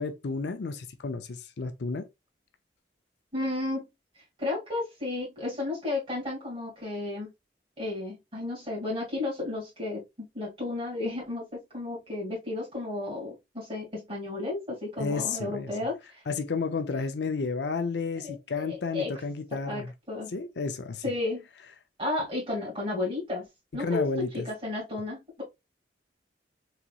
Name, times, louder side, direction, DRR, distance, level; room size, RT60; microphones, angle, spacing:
voice 1, 0.0-2.0 15.0-15.7 16.3-19.9 20.3-21.0 23.7-24.5, left 4 dB, 75° left, 0.5 m, -31 dB
voice 2, 3.3-3.9 4.4-7.3 7.8-16.2 18.2-19.1 19.7-20.3 21.0-21.5 22.0-23.4 23.7-24.0 24.4-25.4, left 2 dB, 30° right, 2.2 m, -33 dB
3.9 x 2.9 x 2.3 m
head